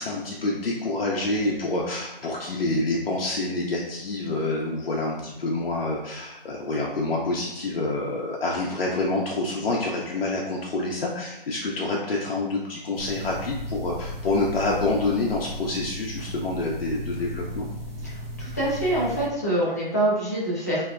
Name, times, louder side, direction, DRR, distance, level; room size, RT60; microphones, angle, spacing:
voice 1, 0.0-17.7, left 2 dB, 80° left, -3 dB, 0.6 m, -27 dB
sound 1, 12.9-19.3, left 1 dB, 85° right, 0.7 m, -35 dB
voice 2, 18.0-20.8, right 1 dB, 20° left, -8 dB, 0.4 m, -25 dB
2.6 x 2.1 x 2.3 m, 0.93 s
figure-of-eight pair, 155°, 29 cm